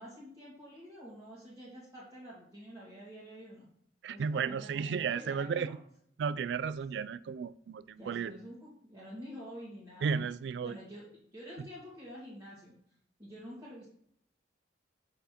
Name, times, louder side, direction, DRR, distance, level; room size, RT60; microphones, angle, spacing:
voice 1, 0.0-3.7 4.1-5.8 8.0-10.2 10.6-11.0 11.3-12.7 13.2-13.9, equal, 15° right, 1.7 m, -48 dB
voice 2, 4.0-5.7 6.2-8.3 10.0-10.8, right 6 dB, 70° right, 0.3 m, -33 dB
6.5 x 5.6 x 2.9 m
head